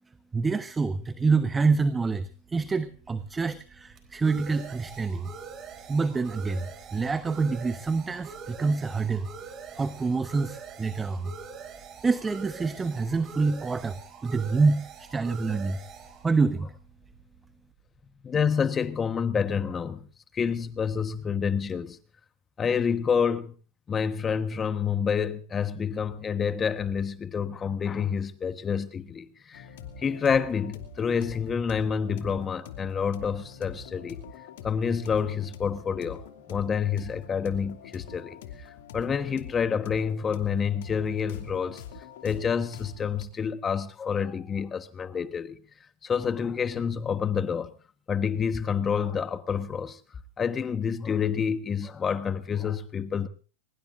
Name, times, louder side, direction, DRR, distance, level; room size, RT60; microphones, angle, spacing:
voice 1, 0.3-5.3 5.9-9.3 9.7-11.3 12.0-15.8 16.2-16.7, right 4 dB, 15° right, 1.0 m, -27 dB
sound 1, 2.3-17.7, right 6 dB, 35° right, 4.3 m, -45 dB
voice 2, 18.2-20.1 20.3-22.0 22.6-23.5 23.9-29.7 30.0-34.2 34.6-36.2 36.5-38.7 38.9-41.8 42.2-45.6 46.0-47.7 48.1-50.0 50.4-53.3, left 6 dB, 25° left, 1.3 m, -28 dB
sound 2, 29.5-43.2, left 7 dB, 70° left, 2.6 m, -44 dB
23.5 x 21.0 x 2.6 m
hypercardioid pair, 95°, 0 cm